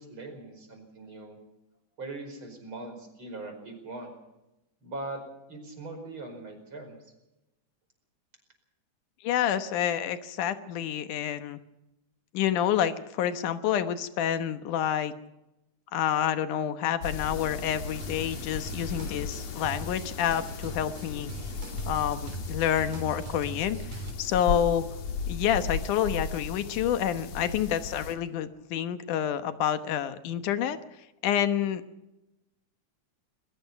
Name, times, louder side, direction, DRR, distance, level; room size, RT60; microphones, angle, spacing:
voice 1, 0.0-1.4 2.0-4.1 4.8-7.1, right 2 dB, 40° right, 5 dB, 5.7 m, -41 dB
voice 2, 9.2-11.6 12.3-15.1 15.9-21.3 21.9-24.8 25.3-30.8 31.2-31.8, left 10 dB, 85° left, 10 dB, 2.7 m, -28 dB
sound 1, 17.0-28.2, left 4 dB, 60° left, 2.9 m, -36 dB
sound 2, 18.0-24.1, right 2 dB, 70° right, 5.0 m, -41 dB
21.5 x 21.0 x 5.8 m, 0.95 s
omnidirectional pair, 3.5 m